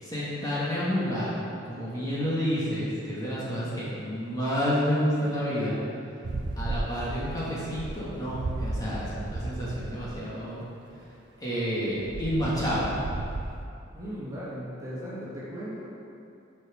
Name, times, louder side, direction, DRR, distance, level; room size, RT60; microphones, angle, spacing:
voice 1, 0.0-5.8 6.6-10.6 11.4-13.0, equal, 20° left, -9 dB, 1.6 m, -29 dB
sound 1, 6.2-10.1 12.0-13.6, right 2 dB, 60° right, 0.5 m, -34 dB
voice 2, 13.9-15.9, equal, 20° right, -9 dB, 1.9 m, -37 dB
6.5 x 6.0 x 4.9 m, 2.5 s
head